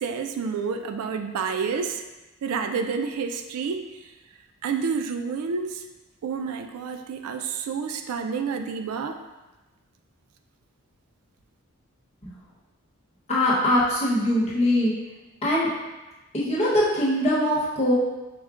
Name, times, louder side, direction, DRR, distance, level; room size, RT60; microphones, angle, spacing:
voice 1, 0.0-2.0 2.4-3.9 4.6-5.9 6.2-9.2, right 5 dB, 85° right, 6 dB, 0.3 m, -29 dB
voice 2, 13.3-14.9 15.4-15.7 16.3-17.9, left 1 dB, 30° left, -6 dB, 1.0 m, -22 dB
4.8 x 2.1 x 3.6 m, 1.1 s
head